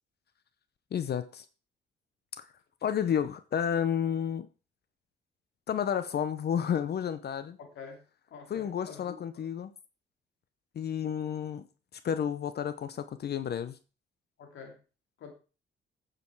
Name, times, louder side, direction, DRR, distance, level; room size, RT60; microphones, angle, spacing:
voice 1, 0.9-1.4 2.4-2.5 2.8-4.5 5.7-7.6 8.5-9.7 10.7-11.7 12.0-13.8, left 8 dB, 55° left, 0.8 m, -31 dB
voice 2, 7.6-8.0 8.3-9.2 14.4-14.8 15.2-15.3, left 6 dB, 75° left, 2.8 m, -47 dB
9.8 x 6.9 x 4.7 m
cardioid pair, 90°, 20 cm